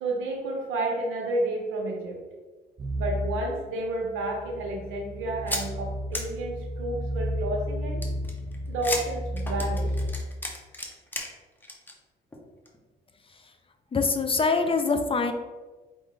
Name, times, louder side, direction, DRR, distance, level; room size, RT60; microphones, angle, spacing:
voice 1, 0.0-2.2 3.0-8.1 8.7-9.9, right 2 dB, 90° right, 0 dB, 1.0 m, -31 dB
sound 1, 2.8-10.1, equal, 20° right, 0.7 m, -33 dB
sound 2, 5.5-5.6 6.1-6.2 8.0-11.3 11.6-11.9 12.3-12.4 12.7-12.8, left 1 dB, 10° left, 0.8 m, -33 dB
voice 2, 13.9-15.3, left 4 dB, 25° left, 6 dB, 0.4 m, -24 dB
4.8 x 2.6 x 3.8 m, 1.3 s
cardioid pair, 90°, 20 cm